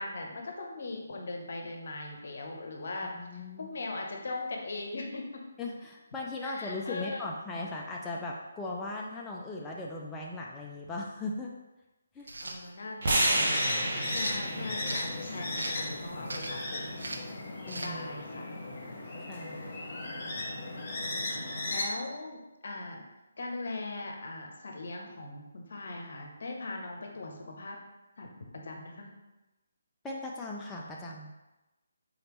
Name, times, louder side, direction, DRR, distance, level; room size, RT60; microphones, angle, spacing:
voice 1, 0.0-5.4 6.4-7.3 12.4-13.8 14.1-17.0 17.8-18.5 21.7-23.0 23.4-27.8 28.2-29.2, left 2 dB, 60° left, 2 dB, 0.7 m, -40 dB
voice 2, 3.2-3.7 5.6-11.5 12.1-12.3 17.6-18.0 19.2-19.6 30.0-31.3, left 2 dB, 10° left, -3 dB, 0.3 m, -38 dB
sound 1, 12.2-12.6 13.2-13.4 14.1-15.1 15.5-15.9 16.3-16.6 17.0-17.3 17.7-17.9, right 2 dB, 75° right, 0.5 m, -39 dB
sound 2, 13.0-17.2, right 1 dB, 55° right, 1.0 m, -32 dB
sound 3, 13.1-21.8, left 2 dB, 40° left, 1.3 m, -36 dB
3.9 x 3.2 x 3.1 m, 1.0 s
figure-of-eight pair, 150°, 0 cm